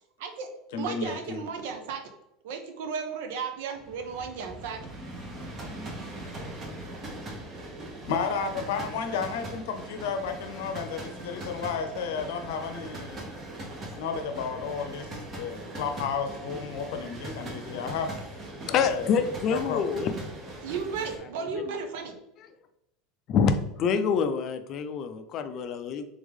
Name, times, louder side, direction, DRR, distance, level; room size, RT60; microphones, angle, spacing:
voice 1, 0.2-2.0 2.4-4.8 20.6-22.2, right 5 dB, 75° right, 6 dB, 0.7 m, -34 dB
voice 2, 0.7-1.4 8.1-13.3 13.9-18.2 18.7-19.8, left 6 dB, 80° left, 6 dB, 0.7 m, -32 dB
sound 1, 3.8-21.2, right 1 dB, 25° right, 0.8 m, -40 dB
voice 3, 18.7-20.7 21.4-21.6 22.4-22.5 23.3-26.0, left 6 dB, 35° left, 9 dB, 0.4 m, -27 dB
3.5 x 3.5 x 3.5 m, 0.86 s
supercardioid pair, 155°, 0 cm